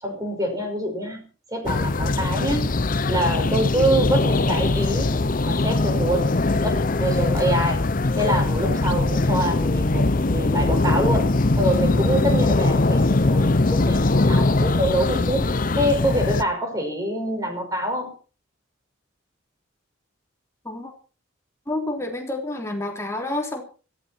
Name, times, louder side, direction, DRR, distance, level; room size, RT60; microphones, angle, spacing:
voice 1, 0.0-2.7 3.1-5.1 5.4-7.8 8.1-15.5 15.8-18.1, equal, 15° right, 3 dB, 5.8 m, -25 dB
sound 1, 1.6-16.4, left 2 dB, 40° left, 0.7 m, -21 dB
voice 2, 21.7-23.6, left 2 dB, 15° left, 2 dB, 3.5 m, -29 dB
17.0 x 15.5 x 4.5 m, 0.37 s
head